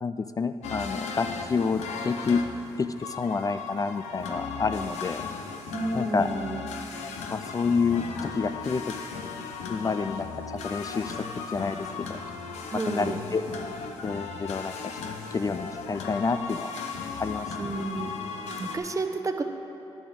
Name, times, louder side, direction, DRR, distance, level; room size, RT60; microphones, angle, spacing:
voice 1, 0.0-2.5 2.8-5.3 5.9-6.3 7.3-8.9 9.7-11.3 11.5-12.2 12.9-13.4 14.0-14.9 15.3-16.7 17.2-17.5, left 4 dB, 30° left, 10 dB, 0.3 m, -29 dB
sound 1, 0.6-18.8, left 5 dB, 85° left, 0.7 m, -36 dB
voice 2, 5.7-6.7 12.7-13.2 17.6-18.1 18.6-19.4, right 2 dB, 30° right, 7 dB, 0.8 m, -31 dB
10.0 x 7.0 x 6.2 m, 2.9 s
supercardioid pair, 55°, 11 cm